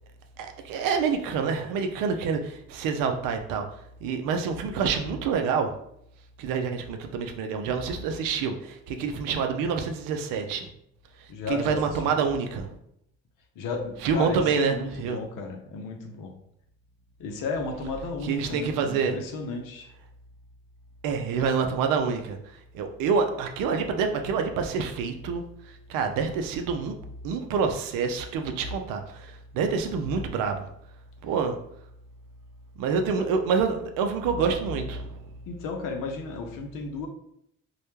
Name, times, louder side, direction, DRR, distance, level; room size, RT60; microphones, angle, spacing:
voice 1, 0.4-3.6 4.0-5.7 6.4-10.7 11.5-12.7 14.0-15.2 18.2-19.2 21.0-22.4 22.7-25.4 25.9-27.0 27.2-30.7 31.2-31.6 32.8-35.2, right 5 dB, 70° right, 6 dB, 0.5 m, -27 dB
voice 2, 11.3-11.8 13.6-16.3 17.2-19.9 33.2-33.3 35.5-37.1, left 4 dB, 70° left, 3 dB, 0.6 m, -34 dB
2.2 x 2.1 x 3.0 m, 0.74 s
hypercardioid pair, 60°, 34 cm